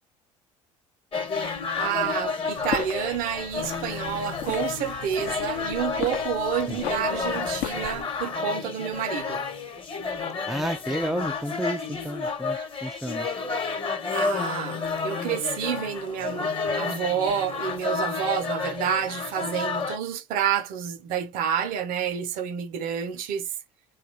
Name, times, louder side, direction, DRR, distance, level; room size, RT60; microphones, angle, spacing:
sound 1, 1.1-20.0, left 4 dB, 30° left, 1.1 m, -31 dB
voice 1, 1.7-9.4 14.1-16.5 16.7-23.5, right 9 dB, 60° right, 0.6 m, -29 dB
sound 2, 2.5-8.0, left 8 dB, 50° left, 0.7 m, -36 dB
voice 2, 10.5-13.3, right 1 dB, ahead, 0.4 m, -31 dB
2.9 x 2.3 x 2.6 m
hypercardioid pair, 65°, 17 cm